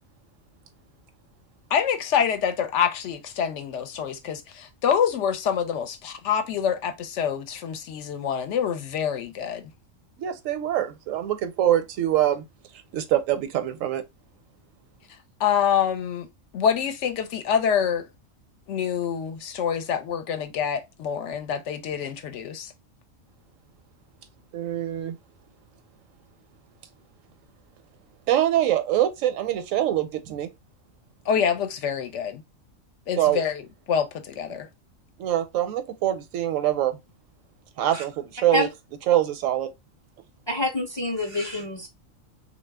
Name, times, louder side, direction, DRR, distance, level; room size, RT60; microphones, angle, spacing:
voice 1, 1.7-9.6 15.4-16.3 16.5-18.0 18.7-22.7 31.3-32.4 33.1-33.6 33.9-34.7, left 8 dB, 70° left, 0.8 m, -26 dB
voice 2, 10.2-12.4 12.9-14.0 24.5-25.2 28.3-30.5 33.2-33.4 35.2-37.0 37.8-38.7 39.1-39.7, right 12 dB, 85° right, 1.0 m, -24 dB
voice 3, 40.5-41.9, left 1 dB, 35° left, 0.4 m, -27 dB
3.1 x 2.4 x 3.3 m
omnidirectional pair, 1.3 m